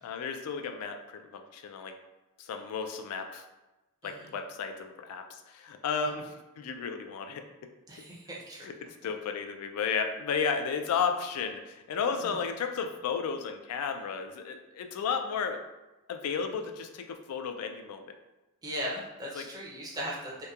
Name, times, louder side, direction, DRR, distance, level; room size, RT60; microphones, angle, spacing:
voice 1, 0.0-1.9 2.4-3.5 4.0-7.4 8.6-15.6 16.1-18.1 19.3-19.4, left 6 dB, 85° left, 7 dB, 0.3 m, -33 dB
voice 2, 7.9-8.7 12.2-12.4 18.6-20.4, equal, 15° right, -4 dB, 0.5 m, -38 dB
2.8 x 2.1 x 2.3 m, 1.1 s
head